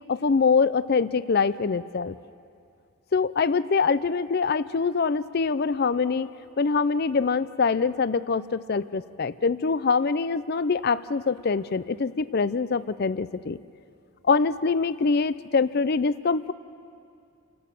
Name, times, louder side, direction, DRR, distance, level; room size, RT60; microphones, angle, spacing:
voice 1, 0.1-2.2 3.1-6.3 6.6-13.6 14.2-16.5, left 4 dB, 50° left, 16 dB, 0.5 m, -24 dB
30.0 x 12.5 x 7.6 m, 2.4 s
head